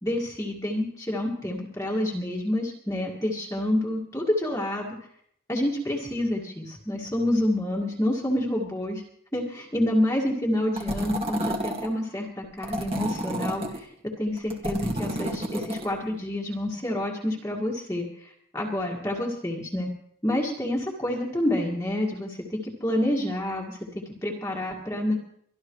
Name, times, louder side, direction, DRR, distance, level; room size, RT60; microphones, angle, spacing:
voice 1, 0.0-4.9 5.5-9.0 9.3-13.9 14.2-19.9 20.2-23.9 24.2-25.2, left 1 dB, 15° left, -3 dB, 2.0 m, -28 dB
sound 1, 10.8-11.9 12.6-13.8 14.4-15.9, right 1 dB, 30° right, 2.0 m, -30 dB
24.0 x 12.5 x 3.2 m, 0.68 s
head